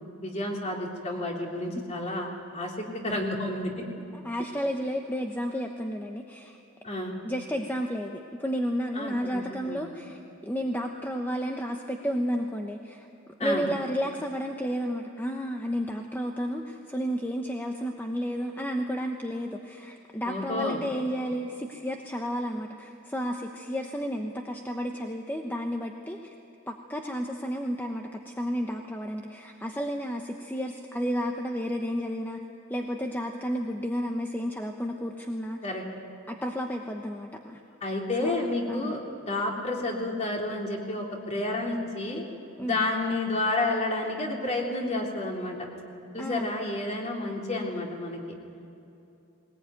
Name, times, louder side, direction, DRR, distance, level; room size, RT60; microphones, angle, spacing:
voice 1, 0.2-3.7 6.8-7.1 8.9-9.8 13.4-13.6 20.2-20.8 35.6-35.8 37.8-39.0 39.3-42.2 42.6-45.6 46.1-48.2, left 2 dB, 35° left, 0 dB, 3.2 m, -30 dB
voice 2, 4.1-6.6 7.2-26.2 26.7-32.4 32.7-35.6 36.3-37.6 38.2-38.3 38.7-38.9 42.6-42.8 46.2-46.5, equal, 10° left, 2 dB, 1.0 m, -32 dB
20.5 x 19.5 x 9.2 m, 2.9 s
head